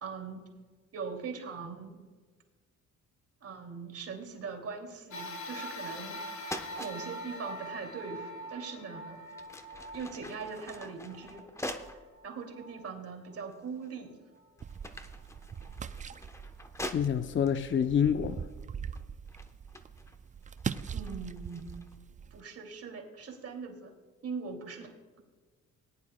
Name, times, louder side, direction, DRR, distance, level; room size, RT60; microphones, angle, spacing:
voice 1, 0.0-0.4 0.9-2.0 3.4-6.2 6.8-9.2 9.9-11.5 12.2-14.2 20.9-21.8 22.3-23.9 24.2-25.2, right 5 dB, 50° right, 1 dB, 2.6 m, -41 dB
sound 1, 5.1-13.7 14.3-14.4 15.5-15.6, equal, 70° left, 1.4 m, -44 dB
sound 2, 5.9-6.2 6.4-7.0 8.6-8.8 9.3-12.1 12.7-12.8 13.5-14.0 14.4-17.5 18.4-18.6 18.9-22.0, left 1 dB, 10° left, 0.9 m, -44 dB
sound 3, 14.6-22.4, right 7 dB, 25° right, 0.4 m, -42 dB
voice 2, 16.9-18.5, left 8 dB, 40° left, 9 dB, 0.6 m, -27 dB
19.5 x 10.5 x 2.2 m, 1.4 s
cardioid pair, 90°, 30 cm